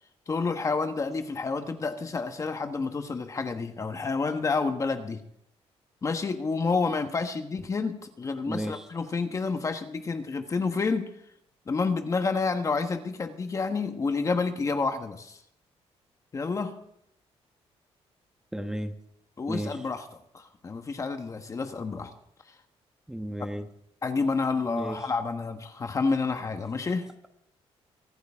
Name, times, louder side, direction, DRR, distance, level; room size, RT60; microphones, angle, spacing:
voice 1, 0.3-5.2 6.0-11.1 11.7-15.4 16.3-16.8 19.4-20.1 20.3-22.1 23.4-23.5 24.0-27.1, left 4 dB, 30° left, 7 dB, 1.3 m, -29 dB
voice 2, 8.5-8.8 18.5-18.9 19.5-19.8 23.1-23.7 24.7-25.0, right 1 dB, 5° right, 6 dB, 1.2 m, -33 dB
24.0 x 9.5 x 3.6 m, 0.74 s
cardioid pair, 130°, 11 cm